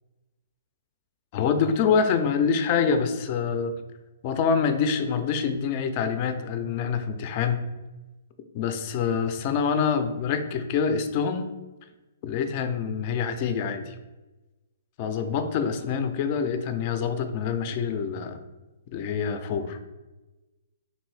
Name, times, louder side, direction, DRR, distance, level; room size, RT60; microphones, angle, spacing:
voice 1, 1.3-3.7 4.2-7.6 8.5-11.5 12.2-13.9 15.0-18.4 18.9-19.8, left 6 dB, 40° left, 8 dB, 0.3 m, -26 dB
2.6 x 2.5 x 3.2 m, 1.1 s
hypercardioid pair, 145°, 0 cm